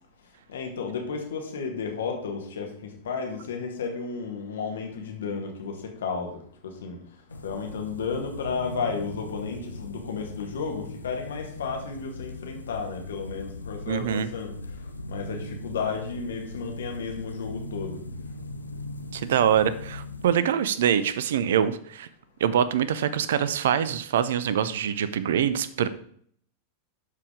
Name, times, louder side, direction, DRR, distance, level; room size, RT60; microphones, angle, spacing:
voice 1, 0.5-6.4 6.6-7.0 7.4-14.6 15.1-18.0, left 5 dB, 65° left, 3 dB, 2.0 m, -33 dB
sound 1, 7.3-20.3, left 2 dB, 80° left, 0.7 m, -39 dB
voice 2, 13.9-14.3 19.1-22.1 22.4-25.9, right 9 dB, 60° right, 15 dB, 0.6 m, -24 dB
11.5 x 4.9 x 5.0 m, 0.62 s
figure-of-eight pair, 90°, 0 cm